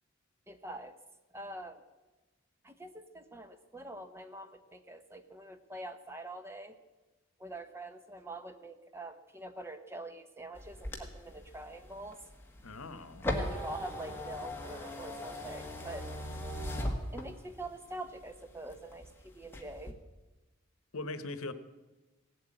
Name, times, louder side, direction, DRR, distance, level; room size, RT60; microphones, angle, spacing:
voice 1, 0.5-0.9 1.3-1.8 2.6-6.8 7.4-12.2 13.2-16.1 17.1-20.0, right 1 dB, 10° right, 9 dB, 0.8 m, -45 dB
sound 1, 10.6-17.6 18.1-19.1 19.4-19.9, left 1 dB, 10° left, 1.5 m, -38 dB
voice 2, 12.6-13.3 20.9-21.5, left 2 dB, 85° left, 13 dB, 1.0 m, -40 dB
17.5 x 8.1 x 8.8 m, 1.1 s
head